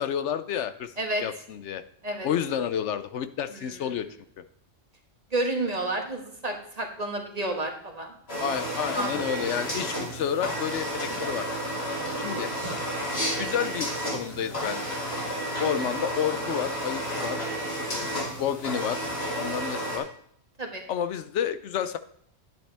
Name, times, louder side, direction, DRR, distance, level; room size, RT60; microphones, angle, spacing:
voice 1, 0.0-0.9 1.2-1.8 2.2-4.1 8.4-11.5 12.2-12.5 13.4-15.0 15.6-17.4 17.8-19.0 19.4-20.1 20.9-22.0, left 9 dB, 80° left, 11 dB, 1.0 m, -30 dB
voice 2, 3.5-3.8 5.3-8.5 8.9-9.1 12.1-12.8 15.6-15.8 20.6-20.8, right 2 dB, 35° right, 3 dB, 1.5 m, -31 dB
sound 1, 8.3-20.0, equal, 60° left, 3.0 m, -31 dB
10.0 x 9.4 x 3.4 m, 0.68 s
omnidirectional pair, 1.2 m